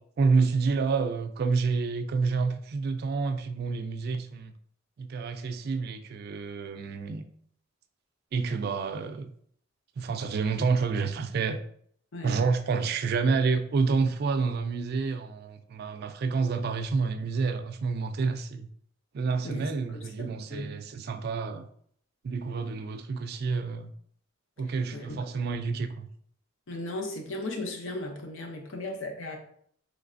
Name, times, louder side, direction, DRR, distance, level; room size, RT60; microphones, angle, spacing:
voice 1, 0.2-4.5 5.0-7.2 8.3-9.3 10.0-11.6 12.2-18.7 19.1-21.7 22.2-23.9 24.6-26.1, right 4 dB, 50° right, 0.3 m, -28 dB
voice 2, 12.1-12.4 19.4-20.7 24.6-25.3 26.7-29.4, left 2 dB, 75° left, 0.6 m, -37 dB
3.2 x 3.1 x 2.5 m
head